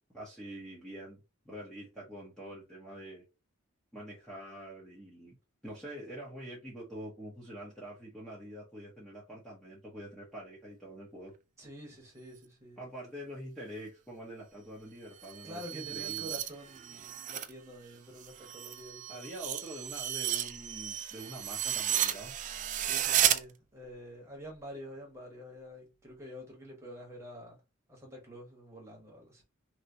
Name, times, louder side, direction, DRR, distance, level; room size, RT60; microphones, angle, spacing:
voice 1, 0.1-1.2 1.4-3.2 3.9-5.4 5.6-11.3 12.8-16.4 19.1-22.3, equal, 5° left, 0.9 m, -45 dB
voice 2, 11.6-12.9 15.4-19.3 22.8-27.6 27.9-29.4, equal, 15° right, 1.3 m, -47 dB
sound 1, 15.1-17.5 17.9-23.4, right 11 dB, 35° right, 0.3 m, -33 dB
3.2 x 2.8 x 2.7 m
head